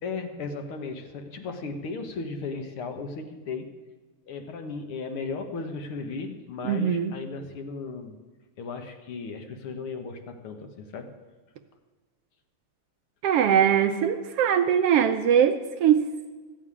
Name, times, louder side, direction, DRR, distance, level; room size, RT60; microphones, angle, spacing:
voice 1, 0.0-3.7 4.3-8.2 8.6-11.1, left 4 dB, 55° left, 6 dB, 1.7 m, -36 dB
voice 2, 6.6-7.1 13.2-16.1, right 9 dB, 75° right, 8 dB, 1.4 m, -21 dB
15.0 x 7.5 x 9.7 m, 1.3 s
omnidirectional pair, 3.4 m